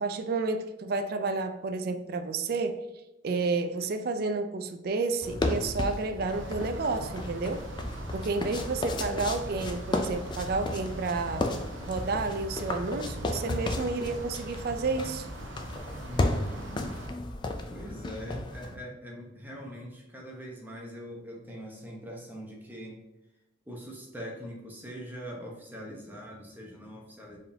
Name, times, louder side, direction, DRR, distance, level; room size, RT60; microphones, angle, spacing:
voice 1, 0.0-2.8 3.2-7.7 8.1-11.5 11.9-15.3, right 3 dB, 50° right, 0.3 m, -30 dB
sound 1, 5.2-18.8, left 2 dB, 25° left, 0.3 m, -34 dB
sound 2, 6.3-17.1, right 1 dB, 80° right, 0.7 m, -41 dB
voice 2, 16.1-16.9 17.7-23.0 23.7-27.4, equal, 10° right, 0.8 m, -42 dB
4.5 x 3.6 x 2.7 m
head